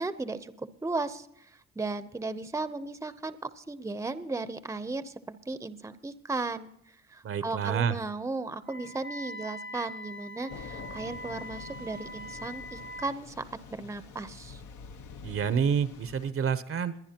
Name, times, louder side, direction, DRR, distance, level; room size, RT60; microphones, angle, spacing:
voice 1, 0.0-1.5 1.8-6.7 7.1-13.4 13.7-14.6, right 3 dB, 10° right, 13 dB, 0.7 m, -35 dB
voice 2, 7.2-8.0 15.2-17.0, right 7 dB, 45° right, 14 dB, 0.8 m, -28 dB
Wind instrument woodwind instrument, 8.6-13.2, equal, 40° left, 1.0 m, -42 dB
Thunder / Rain, 10.5-16.3, left 6 dB, 75° left, 1.1 m, -46 dB
22.5 x 9.7 x 2.9 m, 0.77 s
cardioid pair, 90°, 30 cm